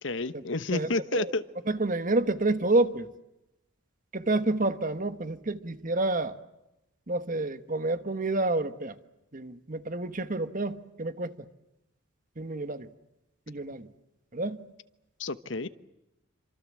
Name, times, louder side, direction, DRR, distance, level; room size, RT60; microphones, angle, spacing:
voice 1, 0.0-1.4 15.2-15.7, left 3 dB, 60° left, 1.1 m, -30 dB
voice 2, 0.7-1.3 1.7-3.1 4.1-6.3 7.1-8.9 9.3-11.3 12.4-12.9 13.5-13.9 14.3-14.6, right 2 dB, 40° right, 1.4 m, -29 dB
28.0 x 26.0 x 7.6 m
head